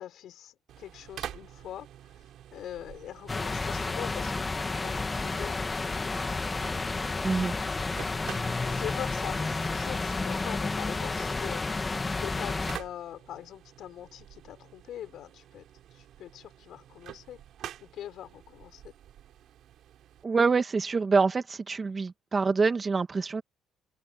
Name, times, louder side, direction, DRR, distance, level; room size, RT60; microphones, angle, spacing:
voice 1, 0.0-2.1 2.5-6.5 8.6-15.7 15.9-17.4 17.8-18.9, left 11 dB, 60° left, 4.3 m, -43 dB
sound 1, 0.7-20.2, right 11 dB, 60° right, 3.8 m, -49 dB
sound 2, 3.3-12.8, left 3 dB, 20° left, 1.7 m, -31 dB
voice 2, 7.2-7.5 20.2-23.4, right 4 dB, 25° right, 1.6 m, -26 dB
cardioid pair, 130°, 0 cm